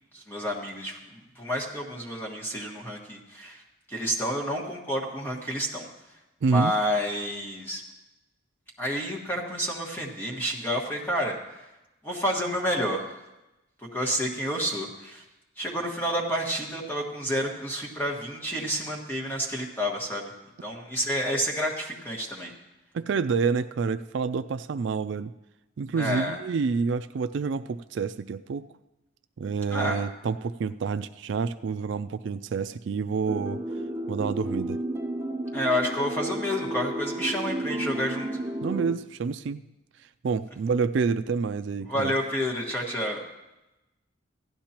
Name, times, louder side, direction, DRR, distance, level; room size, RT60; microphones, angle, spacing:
voice 1, 0.1-3.6 3.9-5.9 6.5-7.8 8.8-11.7 12.0-13.2 13.9-15.2 15.6-20.3 20.6-22.5 26.0-26.4 29.7-30.0 35.5-38.3 41.9-43.2, equal, 10° left, -1 dB, 1.5 m, -29 dB
voice 2, 6.4-6.7 22.9-25.3 25.8-28.6 29.4-33.6 34.1-34.8 38.6-39.6 40.2-42.1, right 5 dB, 70° right, 11 dB, 0.3 m, -28 dB
sound 1, 33.3-38.9, right 1 dB, 15° right, 0.5 m, -32 dB
16.0 x 12.0 x 2.9 m, 0.98 s
head